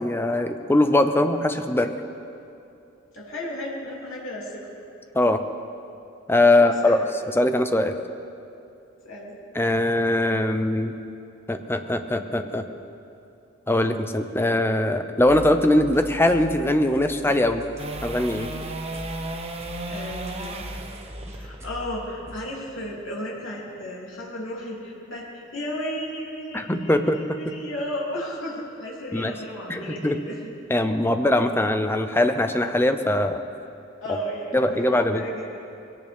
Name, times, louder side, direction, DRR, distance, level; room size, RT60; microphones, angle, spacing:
voice 1, 0.0-1.9 5.1-5.4 6.3-7.0 7.4-7.9 9.5-10.9 11.5-12.6 13.7-17.6 18.0-18.5 26.5-27.2 29.1-29.3 29.7-30.2 30.7-33.4 34.5-35.2, left 1 dB, 10° left, 7 dB, 0.7 m, -21 dB
voice 2, 3.1-4.6 6.6-7.0 9.0-9.4 19.8-20.7 21.3-30.4 34.0-35.6, equal, 85° left, -4 dB, 2.9 m, -34 dB
sound 1, 15.2-22.4, equal, 15° right, 1.8 m, -40 dB
sound 2, 17.8-23.9 30.5-30.6, right 2 dB, 30° right, 1.1 m, -36 dB
22.5 x 16.5 x 3.6 m, 2.7 s
head